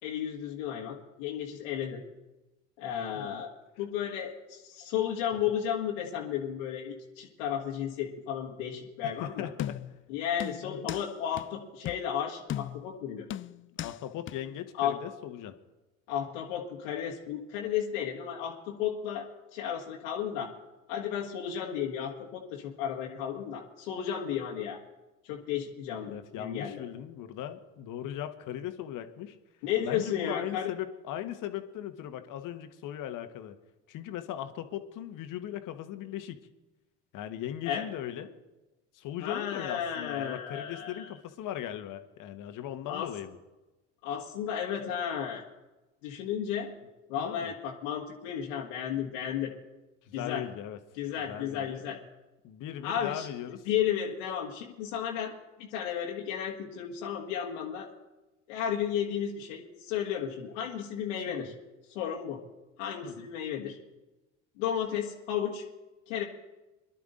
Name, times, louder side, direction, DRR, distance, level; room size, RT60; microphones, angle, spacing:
voice 1, 0.0-2.0 2.8-3.5 3.8-9.5 10.1-13.3 14.8-15.0 16.1-20.5 20.9-24.8 25.2-26.8 29.6-30.7 37.6-37.9 39.2-41.1 42.9-43.1 44.0-45.4 46.0-46.7 47.1-49.5 50.1-50.4 51.0-52.0 52.8-53.3 53.6-55.3 55.6-57.9 58.5-61.5 61.9-62.4 62.8-63.8 64.6-65.6 66.1-66.2, left 9 dB, 80° left, -2 dB, 1.7 m, -33 dB
voice 2, 9.0-9.8 10.6-10.9 13.8-15.5 26.1-29.4 29.8-33.6 33.9-36.4 37.1-38.4 38.9-43.4 47.2-47.5 50.0-50.8 51.3-52.0 52.4-53.6 61.3-61.5 63.0-63.3, left 11 dB, 60° left, 8 dB, 1.5 m, -38 dB
sound 1, 9.6-10.0 10.4-11.1 11.4-11.5 11.8-12.1 12.5-12.9 13.3-14.0 14.3-14.4, left 11 dB, 35° left, 0.5 m, -37 dB
22.5 x 11.5 x 3.9 m, 1.1 s
hypercardioid pair, 70°, 36 cm